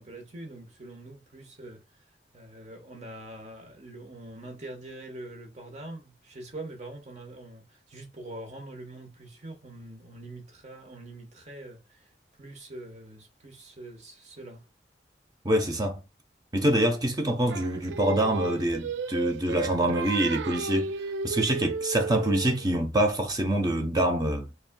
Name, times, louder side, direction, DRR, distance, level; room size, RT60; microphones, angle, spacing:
voice 1, 0.0-2.0 2.3-12.1 12.4-14.7, right 1 dB, 40° right, 1.2 m, -44 dB
voice 2, 15.4-16.0 16.5-20.9 21.2-24.5, right 1 dB, 20° right, 0.7 m, -25 dB
Singing, 17.5-22.7, right 4 dB, 80° right, 0.3 m, -34 dB
4.1 x 3.4 x 2.3 m
head